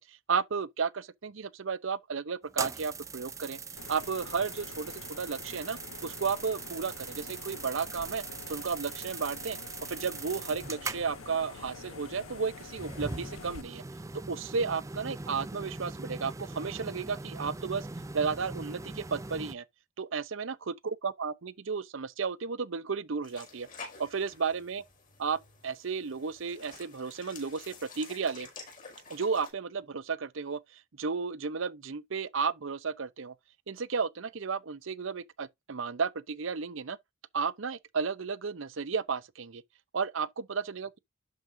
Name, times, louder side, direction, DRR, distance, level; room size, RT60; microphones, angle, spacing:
voice 1, 0.0-3.6 3.9-9.6 9.9-13.8 14.3-17.9 18.1-19.7 20.0-23.7 24.0-24.8 25.2-28.5 29.1-33.3 33.7-37.0 37.3-39.6 39.9-41.0, right 5 dB, 70° right, 0.7 m, -33 dB
sound 1, 2.5-19.5, right 4 dB, 15° right, 0.5 m, -41 dB
sound 2, 3.8-13.6, left 5 dB, 85° left, 0.6 m, -47 dB
sound 3, 23.2-29.5, left 4 dB, 45° left, 5.4 m, -50 dB
12.0 x 5.2 x 2.6 m
head